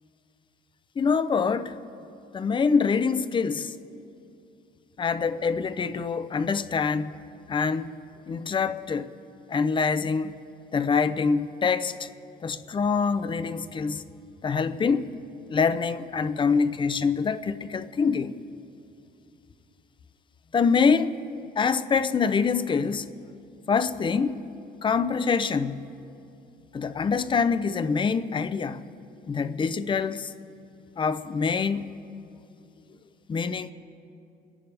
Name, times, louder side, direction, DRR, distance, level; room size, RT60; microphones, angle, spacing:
voice 1, 1.0-1.7 2.3-3.7 5.0-7.2 7.5-8.0 8.3-9.1 9.5-10.4 10.7-12.1 12.4-14.0 14.4-15.1 15.5-18.4 20.5-21.2 21.6-23.1 23.7-24.4 24.8-25.9 26.7-28.8 29.3-30.3 31.0-31.9 33.3-33.7, left 5 dB, 30° left, 0.6 m, -25 dB
28.0 x 11.0 x 3.4 m
cardioid pair, 110°, 17 cm